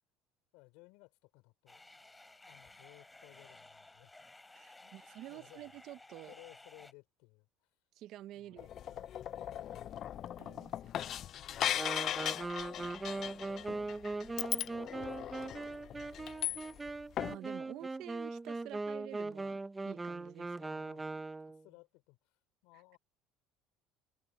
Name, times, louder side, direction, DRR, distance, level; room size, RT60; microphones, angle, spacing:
voice 1, 0.5-1.9 2.5-4.1 4.6-5.0 5.3-5.8 6.3-7.7 8.3-10.0 11.4-11.9 12.8-16.6 17.6-17.8 20.5-23.0, left 26 dB, 80° left, 4.9 m, -61 dB
sound 1, 1.7-6.9, left 2 dB, 10° left, 2.9 m, -56 dB
voice 2, 4.5-6.3 7.9-9.1 10.4-11.1 17.3-20.5, right 14 dB, 55° right, 0.8 m, -49 dB
sound 2, 8.6-16.9 17.2-17.4, left 11 dB, 45° left, 0.3 m, -38 dB
Wind instrument woodwind instrument, 11.7-21.6, right 3 dB, 10° right, 0.7 m, -40 dB
cardioid pair, 135°, 0 cm